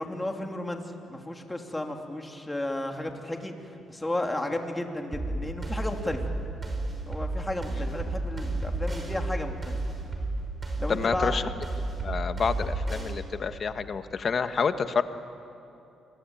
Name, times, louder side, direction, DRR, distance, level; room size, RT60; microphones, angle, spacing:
voice 1, 0.0-6.2 7.0-9.8 10.8-11.4, left 1 dB, 15° left, 3 dB, 3.1 m, -33 dB
sound 1, 5.1-13.1, right 2 dB, 25° right, 5.8 m, -31 dB
voice 2, 10.9-11.5 12.0-15.0, left 6 dB, 45° left, 10 dB, 1.4 m, -28 dB
27.5 x 22.5 x 9.1 m, 2.9 s
cardioid pair, 90°, 0 cm